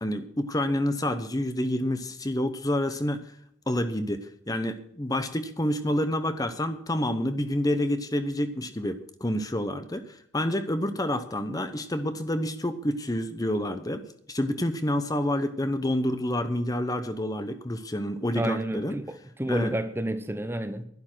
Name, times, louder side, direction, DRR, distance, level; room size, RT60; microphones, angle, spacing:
voice 1, 0.0-3.2 3.7-19.0 19.5-19.7, left 1 dB, 20° left, 0.8 m, -28 dB
voice 2, 18.3-20.8, right 1 dB, 10° right, 0.9 m, -30 dB
12.0 x 11.0 x 6.2 m
head